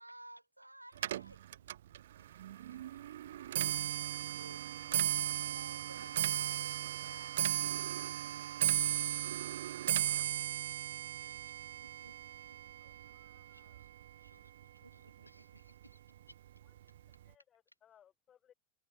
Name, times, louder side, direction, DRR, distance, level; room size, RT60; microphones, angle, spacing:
voice 1, 0.0-1.4 2.2-2.3 4.3-7.9 11.8-12.1 12.5-12.6 14.8-15.6, right 1 dB, 85° right, 4.0 m, -56 dB
Clock, 1.0-14.3 14.6-15.1 15.9-16.0 16.3-16.7 17.0-17.1, right 12 dB, 60° right, 0.9 m, -36 dB
voice 2, 2.1-3.9 9.7-16.4 17.7-17.8, left 1 dB, 90° left, 6.8 m, -68 dB
voice 3, 12.6-13.8 17.3-18.5, left 9 dB, 25° left, 5.6 m, -68 dB
figure-of-eight pair, 90°, 0 cm